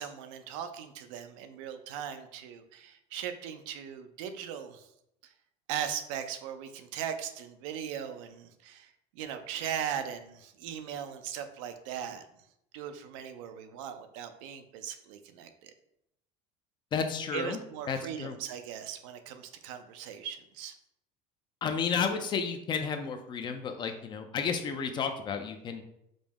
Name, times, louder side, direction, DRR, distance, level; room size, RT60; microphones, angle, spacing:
voice 1, 0.0-4.9 5.2-5.3 5.7-12.5 12.7-15.7 17.3-20.7, right 8 dB, 80° right, 8 dB, 0.5 m, -39 dB
voice 2, 16.9-17.6 17.9-18.4 21.6-25.8, left 6 dB, 30° left, 7 dB, 0.4 m, -32 dB
5.0 x 2.0 x 3.5 m, 0.79 s
cardioid pair, 135°, 16 cm